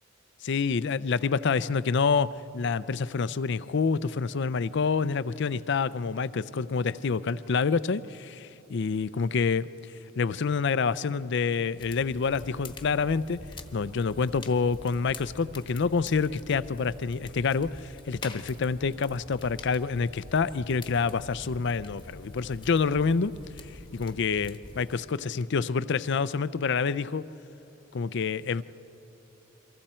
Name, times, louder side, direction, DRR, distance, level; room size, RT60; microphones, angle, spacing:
voice 1, 0.4-9.7 10.2-13.5 13.7-23.3 23.9-27.3 27.9-28.6, left 5 dB, 60° left, 16 dB, 0.5 m, -27 dB
sound 1, 11.8-25.0, left 2 dB, 25° left, 1.1 m, -45 dB
29.5 x 24.0 x 4.4 m, 2.9 s
head